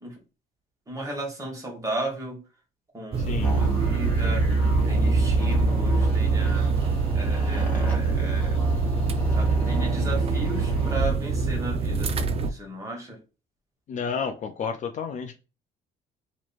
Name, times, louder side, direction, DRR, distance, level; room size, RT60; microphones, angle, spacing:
voice 1, 0.9-2.4 2.9-4.4 4.9-6.7 7.1-8.6 9.3-12.1 12.5-13.2, right 1 dB, 20° right, -1 dB, 1.7 m, -35 dB
sound 1, 3.1-12.5, right 3 dB, 35° right, 0.4 m, -27 dB
voice 2, 3.2-3.5 13.9-15.3, left 6 dB, 45° left, 6 dB, 0.5 m, -31 dB
sound 2, 3.4-11.0, right 3 dB, 10° left, 1.6 m, -25 dB
3.0 x 2.7 x 4.3 m, 0.32 s
cardioid pair, 110°, 17 cm